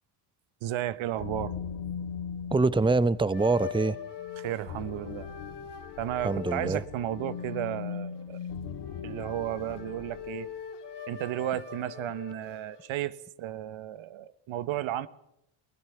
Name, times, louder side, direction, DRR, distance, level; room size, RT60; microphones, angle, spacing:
voice 1, 0.6-1.5 4.4-5.3 6.0-8.4 9.0-10.5 11.1-15.1, right 13 dB, 70° right, 1.1 m, -33 dB
sound 1, 1.2-10.4, left 7 dB, 80° left, 2.2 m, -40 dB
voice 2, 2.5-4.0 6.2-6.8, right 3 dB, 10° right, 0.8 m, -24 dB
sound 2, 3.3-12.9, left 8 dB, 55° left, 2.8 m, -43 dB
22.5 x 17.5 x 7.0 m
supercardioid pair, 60°, 50 cm